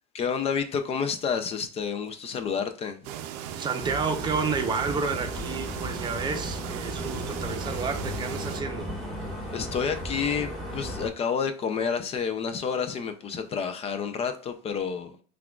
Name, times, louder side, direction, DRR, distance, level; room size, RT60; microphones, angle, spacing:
voice 1, 0.1-3.0 9.5-15.2, left 6 dB, 30° left, 0.4 m, -29 dB
sound 1, 3.0-8.6, right 9 dB, 80° right, 0.5 m, -37 dB
voice 2, 3.6-8.9, right 5 dB, 20° right, 0.7 m, -30 dB
sound 2, 3.8-11.1, equal, ahead, 1.5 m, -36 dB
5.7 x 2.4 x 2.3 m
supercardioid pair, 130°, 20 cm